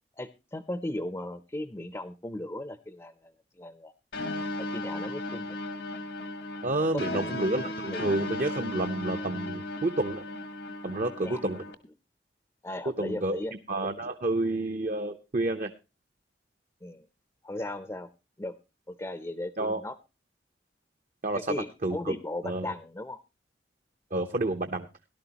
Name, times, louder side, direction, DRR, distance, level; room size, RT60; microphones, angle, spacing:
voice 1, 0.1-3.9 4.6-5.6 6.9-8.1 11.2-11.5 12.6-13.5 16.8-17.1 17.4-18.1 18.4-18.5 18.9-20.0 21.3-23.2, left 1 dB, 15° left, 11 dB, 0.5 m, -37 dB
sound 1, 4.1-11.7, left 2 dB, 75° left, 1.3 m, -36 dB
voice 2, 6.6-10.2 10.8-11.6 13.0-13.4 13.7-15.7 19.6-19.8 21.2-21.5 21.8-22.1 22.4-22.7 24.1-24.9, right 2 dB, 45° right, 7 dB, 0.7 m, -29 dB
18.0 x 11.5 x 2.9 m, 0.27 s
head